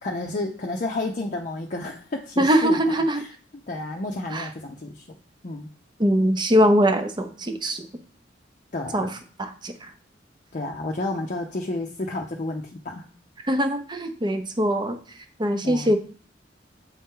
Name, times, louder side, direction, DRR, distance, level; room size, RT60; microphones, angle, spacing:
voice 1, 0.0-3.3 3.7-5.2 5.4-5.7 8.7-9.1 10.5-13.1 15.6-16.0, left 2 dB, 45° left, 1 dB, 0.6 m, -31 dB
voice 2, 2.4-3.2 4.3-4.5 6.0-7.8 8.9-9.1 9.4-9.7 13.5-15.0 15.4-16.0, equal, 25° right, 7 dB, 0.7 m, -21 dB
7.8 x 4.2 x 3.7 m, 0.41 s
head